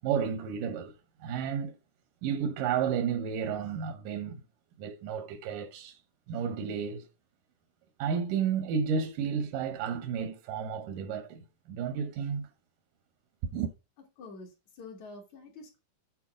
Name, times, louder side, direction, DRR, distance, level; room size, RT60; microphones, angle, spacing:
voice 1, 0.0-0.9 1.2-1.7 2.2-4.4 4.8-6.0 6.3-7.1 8.0-12.5 13.5-13.7, right 7 dB, 85° right, 2.5 m, -32 dB
voice 2, 14.2-15.8, left 3 dB, 65° left, 3.2 m, -47 dB
8.5 x 4.3 x 6.1 m
omnidirectional pair, 3.6 m